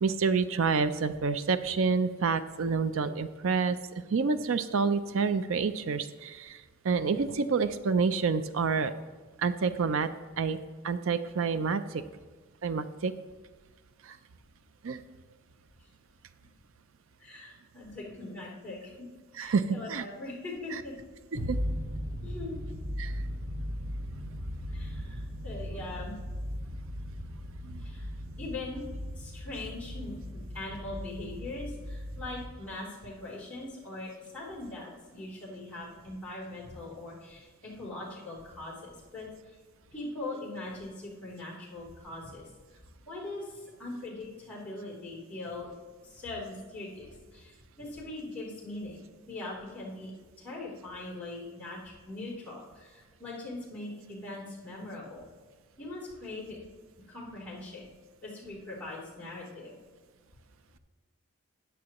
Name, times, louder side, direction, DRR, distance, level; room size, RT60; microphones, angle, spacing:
voice 1, 0.0-3.8 4.1-8.9 9.4-10.1 10.4-10.6 10.8-12.0 12.6-13.1 14.0-14.2 14.8-15.0 19.4-20.0 21.5-21.6 23.0-23.2 24.2-24.3 27.6-27.8, right 5 dB, 65° right, 12 dB, 0.4 m, -28 dB
voice 2, 17.2-18.9 19.3-20.9 22.2-22.5 24.7-26.2 27.8-28.1 28.4-28.9 29.1-39.3 39.9-42.8 43.1-45.7 46.0-50.1 50.4-55.3 55.8-56.6 57.1-57.9 58.2-59.8, left 2 dB, 5° left, -8 dB, 3.2 m, -41 dB
sound 1, 21.3-32.5, equal, 40° right, 0.9 m, -37 dB
14.0 x 9.4 x 3.0 m, 1.4 s
head